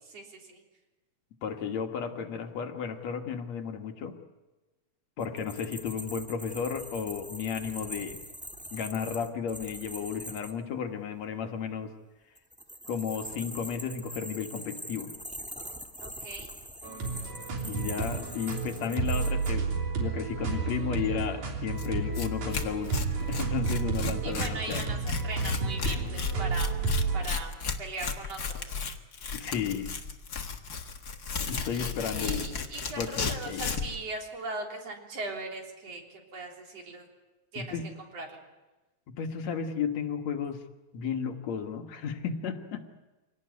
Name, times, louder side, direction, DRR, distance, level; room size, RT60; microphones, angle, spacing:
voice 1, 0.1-0.6 16.0-16.5 24.2-26.8 27.1-28.8 32.2-37.1 37.5-37.7 38.1-38.4, right 3 dB, 60° right, 1 dB, 4.5 m, -39 dB
voice 2, 1.4-4.2 5.2-8.2 8.7-11.9 12.9-15.1 17.6-19.7 20.0-24.9 29.3-29.9 31.5-32.5 33.0-33.7 37.6-37.9 39.2-40.6 40.9-42.8, left 7 dB, 70° left, 5 dB, 2.7 m, -33 dB
sound 1, 5.2-10.5 12.3-19.5, equal, 5° right, 0.7 m, -43 dB
sound 2, 16.8-27.2, right 4 dB, 90° right, 4.7 m, -31 dB
Tearing, 21.8-21.9 22.1-22.3 22.5-33.9, left 5 dB, 40° left, 1.7 m, -34 dB
26.0 x 18.0 x 9.4 m, 1.1 s
omnidirectional pair, 3.3 m